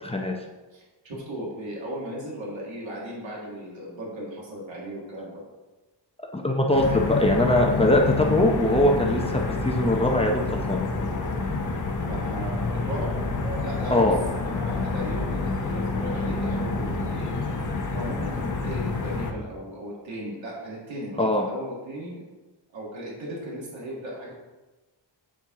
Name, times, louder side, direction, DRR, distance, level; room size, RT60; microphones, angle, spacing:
voice 1, 0.0-0.4 6.3-10.8 13.9-14.2 21.2-21.4, left 1 dB, 15° left, 0 dB, 0.6 m, -22 dB
voice 2, 0.7-5.4 12.1-14.1 14.4-17.3 17.9-22.2 22.7-24.3, right 1 dB, 85° right, -4 dB, 1.9 m, -36 dB
sound 1, 6.7-19.3, left 3 dB, 45° left, 0.9 m, -28 dB
8.5 x 4.4 x 3.7 m, 1.2 s
wide cardioid pair, 120°, 44 cm